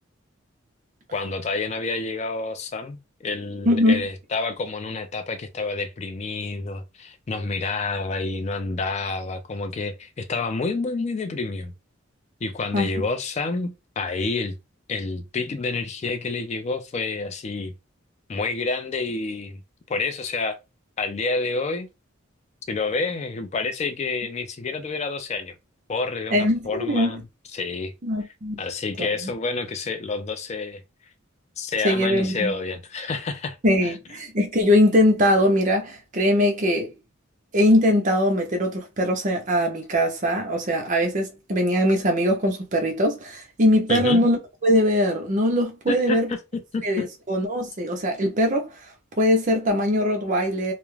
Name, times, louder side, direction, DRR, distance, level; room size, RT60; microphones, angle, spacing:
voice 1, 1.1-11.7 12.4-14.5 14.9-17.7 18.3-19.6 19.9-20.6 21.0-21.9 22.7-25.6 25.9-27.2 27.5-27.9 28.6-30.8 31.6-33.6 33.8-33.9 43.9-44.3 45.9-46.4 46.7-47.0, left 3 dB, 35° left, 0.3 m, -28 dB
voice 2, 3.7-4.0 12.7-12.9 26.3-27.2 28.0-28.6 29.0-29.3 31.8-32.5 33.6-36.9 37.5-46.3 46.8-48.7 49.2-50.7, left 1 dB, 40° right, 0.6 m, -21 dB
2.3 x 2.0 x 3.1 m
head